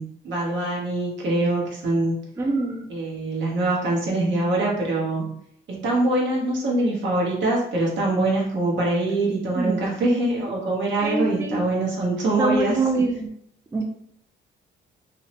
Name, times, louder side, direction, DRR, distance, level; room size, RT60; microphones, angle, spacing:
voice 1, 0.0-2.1 2.9-5.3 5.7-13.0, right 2 dB, 65° right, -3 dB, 1.0 m, -24 dB
voice 2, 2.4-2.9 9.6-9.8 11.0-11.6 12.4-13.3 13.7-13.8, right 3 dB, 15° right, 2 dB, 0.3 m, -24 dB
2.6 x 2.0 x 2.8 m, 0.70 s
cardioid pair, 90°, 20 cm